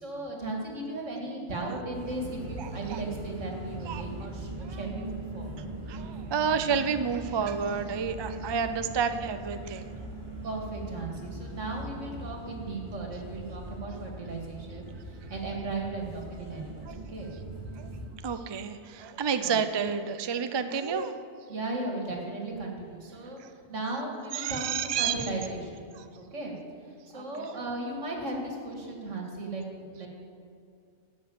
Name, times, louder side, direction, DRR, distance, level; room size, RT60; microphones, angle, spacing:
voice 1, 0.0-5.7 10.4-17.3 19.4-19.6 21.5-25.8 26.1-26.5 27.1-30.1, right 2 dB, 80° right, 0 dB, 2.4 m, -36 dB
sound 1, 1.9-18.1, right 2 dB, 25° right, 2.9 m, -40 dB
voice 2, 2.6-3.0 3.9-4.0 4.6-4.8 5.9-9.8 13.9-14.0 16.9-17.0 17.8-17.9 18.2-21.2 23.4-23.5 24.3-25.1 25.9-26.1 27.1-27.5, right 6 dB, 40° right, 9 dB, 0.4 m, -30 dB
13.0 x 6.2 x 8.5 m, 2.4 s
omnidirectional pair, 1.3 m